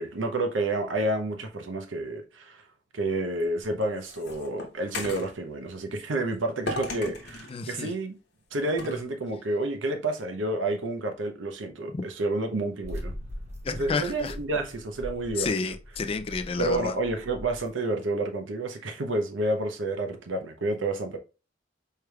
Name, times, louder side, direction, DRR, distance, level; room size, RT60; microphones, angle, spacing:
voice 1, 0.0-2.6 2.9-8.2 8.5-13.1 13.8-15.7 16.6-21.2, right 2 dB, 85° right, 0.7 m, -29 dB
sound 1, 3.4-5.3 6.7-7.5 8.8-9.0, left 1 dB, 60° left, 0.9 m, -36 dB
voice 2, 7.5-7.9 11.9-12.0 13.6-14.4 15.4-16.9, left 4 dB, 30° left, 0.3 m, -30 dB
sound 2, 12.8-17.7, left 1 dB, 35° right, 1.0 m, -41 dB
4.6 x 3.3 x 2.3 m
head